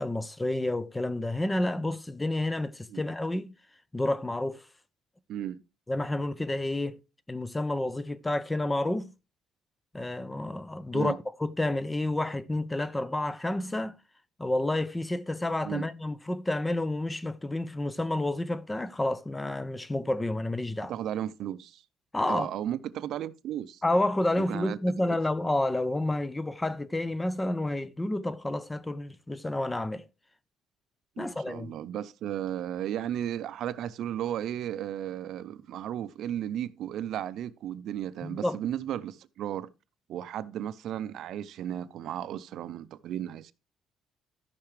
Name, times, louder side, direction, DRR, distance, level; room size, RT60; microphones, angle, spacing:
voice 1, 0.0-3.5 3.9-4.6 5.9-7.0 7.3-9.1 9.9-14.0 14.4-20.9 22.1-22.5 23.8-30.1 31.2-31.7 38.2-38.6, left 1 dB, 10° left, 0.5 m, -30 dB
voice 2, 5.3-5.6 10.9-11.2 15.6-15.9 20.9-21.8 22.3-23.8 24.5-24.8 25.1-25.2 31.2-39.7 40.1-43.5, right 11 dB, 70° right, 0.5 m, -34 dB
14.0 x 5.8 x 3.2 m
cardioid pair, 135°, 0 cm